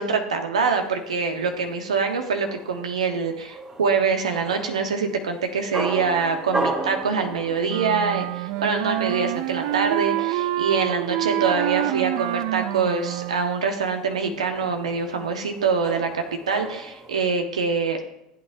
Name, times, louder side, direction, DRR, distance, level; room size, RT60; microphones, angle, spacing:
voice 1, 0.0-18.0, right 5 dB, 85° right, 5 dB, 1.2 m, -25 dB
sound 1, 0.8-17.2, right 2 dB, 20° right, 1.2 m, -36 dB
Wind instrument woodwind instrument, 7.7-13.6, right 16 dB, 60° right, 0.3 m, -27 dB
15.0 x 8.6 x 2.7 m, 0.85 s
hypercardioid pair, 85°, 3 cm